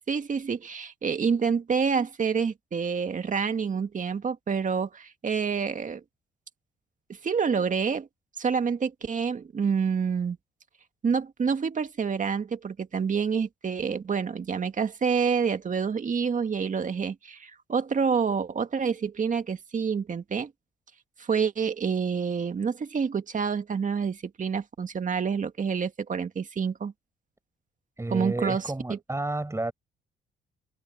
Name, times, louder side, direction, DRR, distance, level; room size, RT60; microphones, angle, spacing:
voice 1, 0.1-6.0 7.2-8.1 8.4-10.4 11.0-20.5 21.2-26.9 28.1-28.6 28.9-29.0, right 6 dB, 40° right, 2.0 m, -27 dB
voice 2, 28.0-29.7, right 2 dB, 15° right, 5.4 m, -31 dB
cardioid pair, 90°, 20 cm